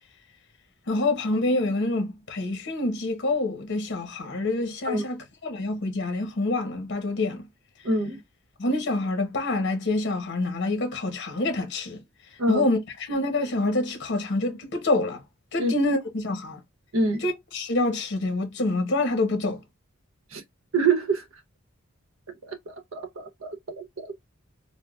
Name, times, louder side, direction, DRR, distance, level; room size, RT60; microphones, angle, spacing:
voice 1, 0.9-5.2 5.4-7.4 8.6-12.0 12.5-12.8 13.1-15.2 15.5-16.6 17.2-19.6, left 2 dB, 55° left, 0.8 m, -26 dB
voice 2, 7.8-8.2 12.4-12.7 15.6-15.7 16.9-17.3 20.3-20.4 20.7-21.2 22.4-24.2, right 2 dB, 75° right, 0.8 m, -26 dB
3.3 x 2.0 x 2.3 m
head